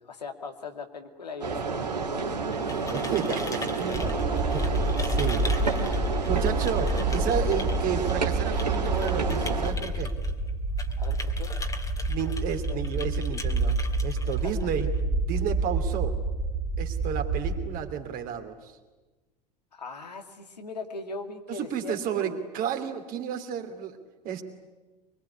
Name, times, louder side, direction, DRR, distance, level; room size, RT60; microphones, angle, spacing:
voice 1, 0.0-2.6 2.9-3.0 3.3-3.5 3.9-4.9 5.7-6.1 11.0-11.5 12.3-12.4 12.7-12.8 14.2-14.3 19.7-22.4, left 4 dB, 80° left, 5 dB, 2.3 m, -40 dB
sound 1, 1.4-9.7, right 4 dB, 80° right, 2.9 m, -30 dB
sound 2, 2.4-15.0, left 2 dB, 15° left, 2.2 m, -42 dB
voice 2, 2.9-4.1 4.5-5.5 6.2-10.1 12.1-13.8 14.0-14.9 15.2-16.2 16.8-18.8 21.5-24.0 24.2-24.4, right 8 dB, 45° right, 5 dB, 2.9 m, -32 dB
sound 3, 3.9-17.7, right 2 dB, 15° right, 2.2 m, -28 dB
25.0 x 22.0 x 9.9 m, 1.2 s
figure-of-eight pair, 75°, 21 cm